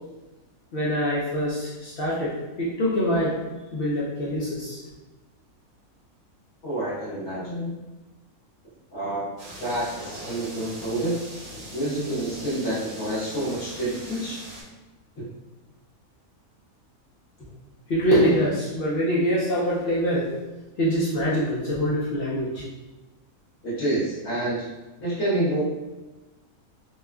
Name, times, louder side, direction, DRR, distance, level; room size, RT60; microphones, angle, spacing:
voice 1, 0.7-3.4 3.7-4.8 17.9-20.3 20.8-22.6, equal, 75° left, -7 dB, 0.5 m, -24 dB
voice 2, 6.6-7.7 8.9-9.3 9.6-11.2 11.5-14.4 15.2-15.3 23.6-24.7 25.0-25.6, right 1 dB, 50° left, -8 dB, 1.3 m, -28 dB
sound 1, 9.4-14.6, right 1 dB, 65° right, 1.1 m, -41 dB
3.0 x 2.2 x 2.2 m, 1.1 s
omnidirectional pair, 1.5 m